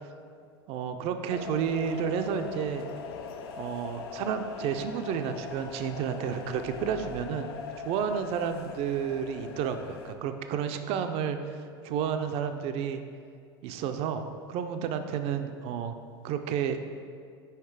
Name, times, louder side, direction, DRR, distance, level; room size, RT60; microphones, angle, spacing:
voice 1, 0.7-2.9 3.6-7.5 7.9-13.0 13.6-15.9 16.2-16.8, right 7 dB, 50° right, 8 dB, 0.5 m, -31 dB
sound 1, 1.3-10.1, left 6 dB, 75° left, 0.5 m, -41 dB
5.7 x 4.2 x 4.7 m, 2.2 s
hypercardioid pair, 95°, 13 cm